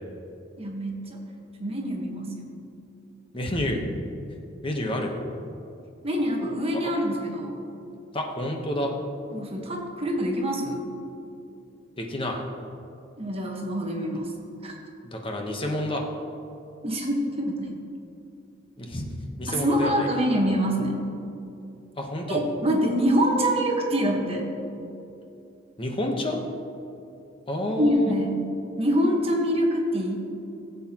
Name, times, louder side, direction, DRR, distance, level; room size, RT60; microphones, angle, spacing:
voice 1, 0.6-1.2 1.6-2.5 6.0-7.6 9.3-10.9 13.2-14.3 14.6-14.7 16.8-17.7 19.5-21.0 22.3-24.5 27.8-28.4 28.8-30.2, equal, 30° right, 0 dB, 1.3 m, -25 dB
voice 2, 3.3-3.8 4.6-5.2 6.8-6.9 8.1-8.9 12.0-12.4 15.0-16.1 18.8-19.1 19.4-20.1 22.0-22.4 25.8-26.4 27.5-28.2, left 1 dB, 25° left, 2 dB, 1.0 m, -29 dB
15.5 x 8.1 x 3.0 m, 2.7 s
head